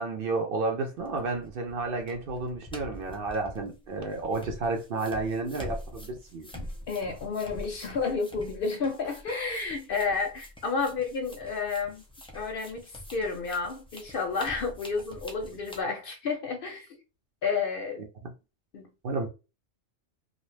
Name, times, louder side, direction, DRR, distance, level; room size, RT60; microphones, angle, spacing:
voice 1, 0.0-6.5 18.0-18.3 19.0-19.3, right 3 dB, 55° right, 0.8 m, -31 dB
sound 1, 1.0-15.8, left 1 dB, 10° left, 0.3 m, -45 dB
voice 2, 6.5-12.0 12.3-17.0 17.4-18.0 18.7-18.9, left 4 dB, 60° left, 0.6 m, -31 dB
2.5 x 2.3 x 3.2 m
omnidirectional pair, 1.2 m